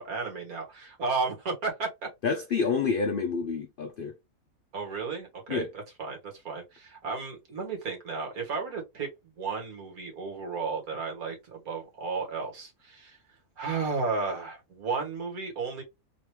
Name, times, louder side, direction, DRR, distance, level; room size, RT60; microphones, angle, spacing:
voice 1, 0.0-1.9 4.7-9.1 9.4-13.2 13.6-15.8, right 4 dB, 70° right, 2.1 m, -33 dB
voice 2, 2.2-4.1 5.5-5.7, left 5 dB, 85° left, 0.4 m, -28 dB
3.9 x 3.1 x 3.2 m
omnidirectional pair, 1.6 m